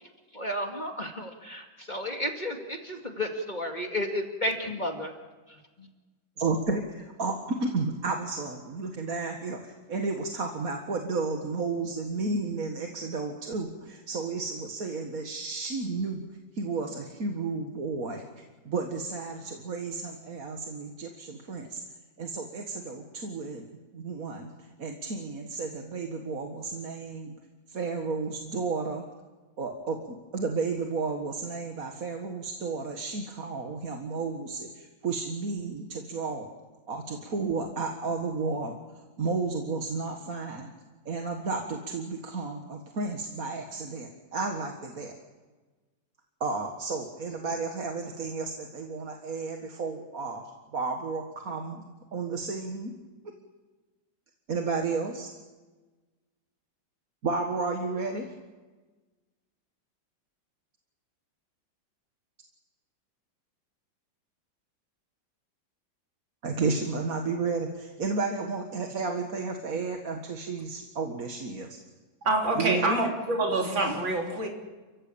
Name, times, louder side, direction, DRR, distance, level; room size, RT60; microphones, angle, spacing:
voice 1, 0.3-5.1, left 1 dB, 25° left, 3 dB, 2.2 m, -32 dB
voice 2, 6.4-16.2 16.5-18.2 18.7-21.8 22.2-27.4 27.7-29.1 29.6-36.5 36.9-38.8 39.2-40.7 41.1-45.1 46.4-52.9 54.5-55.3 57.2-58.3 66.4-71.7 72.6-73.0, right 4 dB, 45° right, 3 dB, 2.0 m, -32 dB
voice 3, 72.2-74.5, right 2 dB, 75° right, 1 dB, 4.4 m, -26 dB
29.0 x 15.5 x 8.7 m, 1.3 s
omnidirectional pair, 2.1 m